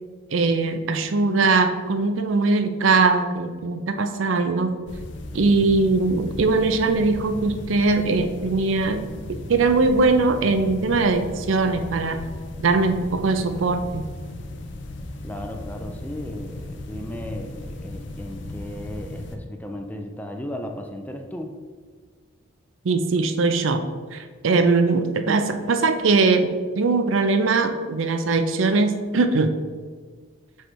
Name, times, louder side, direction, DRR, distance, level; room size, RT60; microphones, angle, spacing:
voice 1, 0.3-4.8 5.3-12.2 12.6-14.1 22.8-29.5, right 3 dB, 75° right, 8 dB, 0.5 m, -21 dB
sound 1, 4.9-19.4, left 2 dB, 60° left, 0.6 m, -36 dB
voice 2, 15.2-21.6, left 1 dB, 10° left, 4 dB, 0.4 m, -35 dB
6.4 x 3.3 x 4.5 m, 1.5 s
head